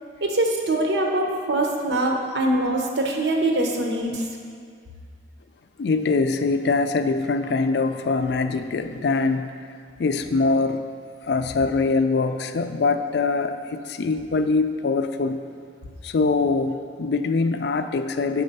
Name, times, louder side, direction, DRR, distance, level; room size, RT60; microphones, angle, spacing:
voice 1, 0.2-4.3, right 1 dB, 80° right, 1 dB, 0.9 m, -23 dB
voice 2, 5.8-9.5 10.0-10.8 11.2-15.4 16.0-18.4, left 3 dB, 70° left, 9 dB, 0.4 m, -23 dB
7.2 x 4.3 x 5.3 m, 2.1 s
head